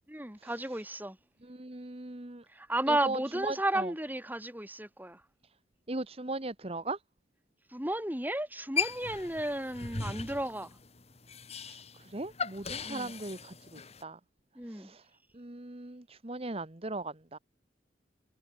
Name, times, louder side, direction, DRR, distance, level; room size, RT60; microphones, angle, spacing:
voice 1, 0.1-1.2 2.5-5.2 7.7-10.7 12.8-13.1 14.6-14.9, right 1 dB, 10° right, 4.9 m, -33 dB
voice 2, 1.4-2.4 2.9-3.9 5.9-7.0 11.7-11.8 12.1-13.5 14.0-14.2 14.7-15.0 15.3-17.4, right 2 dB, 30° right, 1.2 m, -38 dB
sound 1, 8.8-14.0, left 5 dB, 35° left, 2.9 m, -38 dB
head